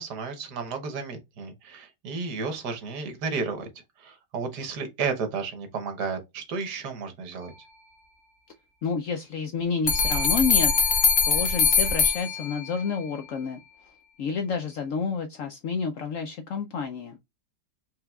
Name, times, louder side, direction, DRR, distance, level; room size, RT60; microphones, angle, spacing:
voice 1, 0.0-3.7 4.0-7.5, right 5 dB, 75° right, 1.5 m, -32 dB
voice 2, 8.8-13.6 14.2-17.2, left 5 dB, 70° left, 0.8 m, -30 dB
sound 1, 9.9-12.9, left 4 dB, 50° left, 1.1 m, -22 dB
4.6 x 3.3 x 2.3 m
omnidirectional pair, 1.8 m